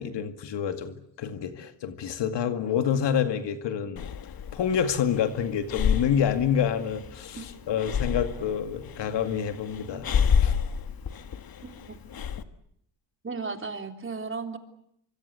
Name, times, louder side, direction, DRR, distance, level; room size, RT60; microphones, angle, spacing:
voice 1, 0.0-4.1 4.5-10.1 10.4-10.6, left 8 dB, 80° left, 8 dB, 2.2 m, -28 dB
Breathing, 4.0-12.4, left 7 dB, 55° left, 1.6 m, -29 dB
voice 2, 11.6-12.0 13.2-14.6, right 4 dB, 30° right, 6 dB, 3.5 m, -35 dB
25.0 x 25.0 x 8.2 m, 0.73 s
cardioid pair, 115°, 42 cm